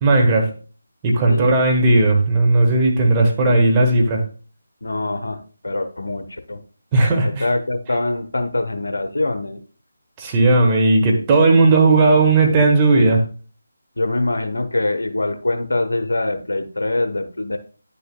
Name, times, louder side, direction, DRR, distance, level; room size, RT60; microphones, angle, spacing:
voice 1, 0.0-0.5 1.0-4.2 6.9-7.4 10.2-13.2, right 2 dB, 20° right, 0 dB, 1.2 m, -15 dB
voice 2, 4.8-6.6 7.2-9.6 14.0-17.6, left 2 dB, 75° left, 8 dB, 0.8 m, -24 dB
9.8 x 6.8 x 2.2 m, 0.39 s
figure-of-eight pair, 155°, 0 cm